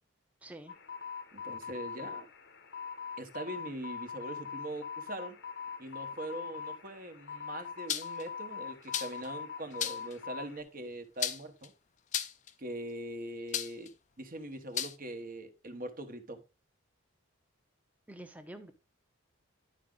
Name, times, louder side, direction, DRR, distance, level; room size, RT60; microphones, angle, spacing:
voice 1, 0.4-0.8 18.1-18.7, right 1 dB, 5° right, 0.8 m, -47 dB
sound 1, 0.7-10.6, left 6 dB, 55° left, 0.9 m, -43 dB
voice 2, 1.3-2.3 3.2-5.4 5.8-11.7 12.6-13.9 14.2-16.4, right 1 dB, 40° right, 1.1 m, -42 dB
sound 2, 7.9-8.2 8.9-9.3 9.8-10.1 11.2-11.7 12.1-12.5 13.5-13.9 14.8-15.0, left 9 dB, 35° left, 0.5 m, -34 dB
11.0 x 4.9 x 3.7 m
head